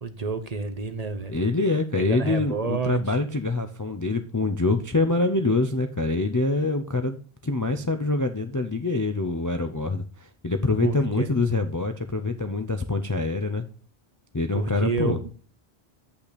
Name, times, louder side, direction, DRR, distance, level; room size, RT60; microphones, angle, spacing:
voice 1, 0.0-1.3 2.0-3.2 10.8-11.3 14.5-15.3, right 4 dB, 45° right, 10 dB, 0.8 m, -29 dB
voice 2, 1.3-10.0 10.4-13.6 14.3-15.2, left 3 dB, 25° left, 6 dB, 0.4 m, -25 dB
8.5 x 5.7 x 4.0 m, 0.41 s
omnidirectional pair, 1.1 m